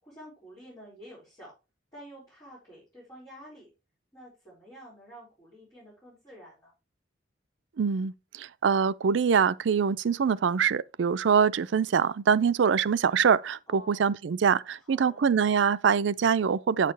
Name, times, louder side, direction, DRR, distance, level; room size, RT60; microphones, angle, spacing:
voice 1, 0.0-1.5 1.9-3.7 4.1-6.7 13.7-14.0 14.8-15.2, equal, 20° left, 5.1 m, -49 dB
voice 2, 7.8-16.9, right 6 dB, 80° right, 0.4 m, -24 dB
9.1 x 6.6 x 3.3 m
head